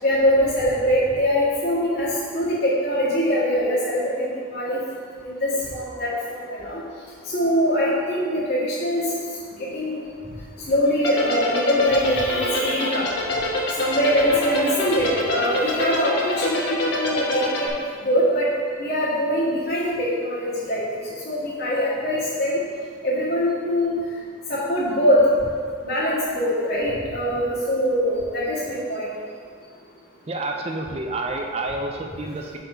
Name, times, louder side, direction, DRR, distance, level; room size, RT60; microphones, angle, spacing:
voice 1, 0.0-4.8 5.2-6.8 7.3-9.1 9.6-10.0 10.7-13.1 13.8-17.7 18.0-18.5 18.8-22.6 23.0-24.0 24.5-25.2 25.8-29.1, equal, 55° left, -12 dB, 1.8 m, -23 dB
sound 1, 11.0-17.7, left 2 dB, 80° left, 1.1 m, -25 dB
voice 2, 30.3-32.6, right 2 dB, 30° right, 2 dB, 0.4 m, -29 dB
6.6 x 4.4 x 5.0 m, 2.1 s
head